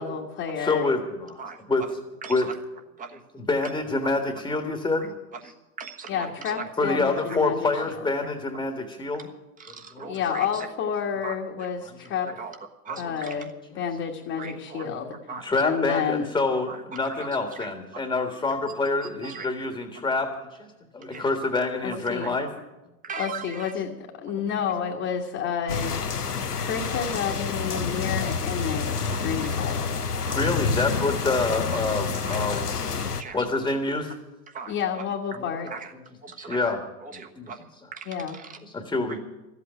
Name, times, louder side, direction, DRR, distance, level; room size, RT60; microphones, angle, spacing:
voice 1, 0.0-0.9 6.1-8.1 10.0-12.3 13.0-13.5 13.7-15.1 15.6-16.3 21.8-22.3 23.1-26.0 26.5-30.0 34.7-35.7 38.1-38.4, left 7 dB, 30° left, -1 dB, 1.5 m, -30 dB
voice 2, 0.6-1.4 1.7-1.8 2.3-2.5 3.3-5.1 6.8-9.3 9.9-10.2 11.8-11.9 12.9-13.0 14.8-22.5 24.4-24.5 29.3-29.4 30.1-32.6 33.3-34.1 35.4-35.5 36.4-36.8 37.4-37.5 38.6-39.2, left 3 dB, 10° left, 5 dB, 1.5 m, -27 dB
voice 3, 1.4-1.9 2.2-2.5 3.0-3.2 4.0-4.1 5.0-5.1 5.3-6.6 7.8-7.9 9.6-10.7 11.2-11.3 12.4-12.6 12.8-13.4 14.4-14.8 15.3-15.5 16.7-18.0 19.2-19.5 21.1-21.2 22.2-22.3 23.0-23.7 26.8-27.0 28.0-28.1 29.1-29.5 30.3-30.4 32.2-32.5 33.0-33.4 34.5-35.0 35.7-35.9 36.2-37.6 37.9-38.6, right 5 dB, 20° right, 4 dB, 1.3 m, -39 dB
sound 1, 25.7-33.2, left 5 dB, 85° left, 0.9 m, -28 dB
14.0 x 8.4 x 10.0 m, 1.0 s
figure-of-eight pair, 90°, 45 cm